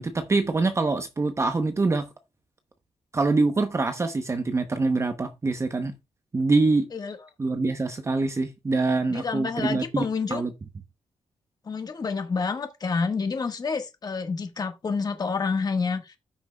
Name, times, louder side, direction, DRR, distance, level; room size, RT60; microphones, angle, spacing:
voice 1, 0.0-2.1 3.1-5.9 6.3-6.9 7.4-10.0 10.3-10.5, right 3 dB, 25° right, 0.8 m, -24 dB
voice 2, 9.1-10.4 11.7-16.1, left 5 dB, 35° left, 1.5 m, -28 dB
13.5 x 6.0 x 2.3 m
wide cardioid pair, 135°, 11 cm